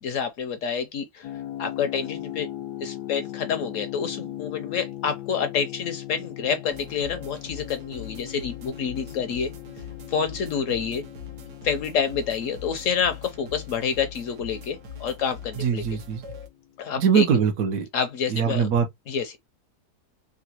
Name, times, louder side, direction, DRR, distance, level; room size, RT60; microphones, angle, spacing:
voice 1, 0.0-1.3 1.6-2.5 2.8-9.5 10.1-11.0 11.6-15.8 16.8-17.2 17.9-18.7 19.1-19.4, left 7 dB, 70° left, 0.8 m, -28 dB
sound 1, 1.2-16.0, left 13 dB, 90° left, 1.2 m, -39 dB
sound 2, 6.7-16.5, left 6 dB, 80° right, 1.4 m, -42 dB
voice 2, 15.6-16.2 17.0-17.9 18.3-18.9, right 6 dB, 65° right, 1.1 m, -22 dB
3.7 x 2.2 x 2.8 m
omnidirectional pair, 1.7 m